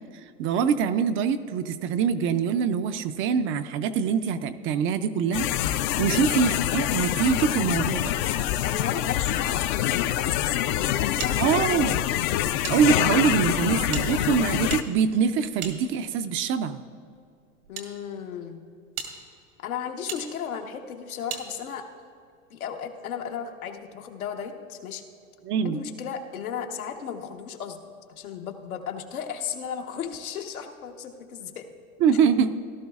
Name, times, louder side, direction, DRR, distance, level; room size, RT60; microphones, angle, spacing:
voice 1, 0.4-5.5 6.0-8.1 11.4-12.0 12.7-16.8 25.4-25.8 32.0-32.6, right 7 dB, 30° right, 10 dB, 0.4 m, -24 dB
sound 1, 5.3-14.8, left 12 dB, 40° left, 0.4 m, -25 dB
voice 2, 8.6-11.4 11.8-12.0 17.7-18.6 19.6-21.8 22.5-25.0 25.6-27.8 28.2-31.7, left 8 dB, 85° left, 3 dB, 1.3 m, -35 dB
sound 2, 11.2-12.8 13.1-13.2 13.9-16.3 17.1-17.9 18.4-18.5 18.9-19.1 20.1-20.2 21.3-21.5, right 7 dB, 85° right, 2.0 m, -37 dB
17.5 x 12.0 x 2.4 m, 2.3 s
hypercardioid pair, 105°, 42 cm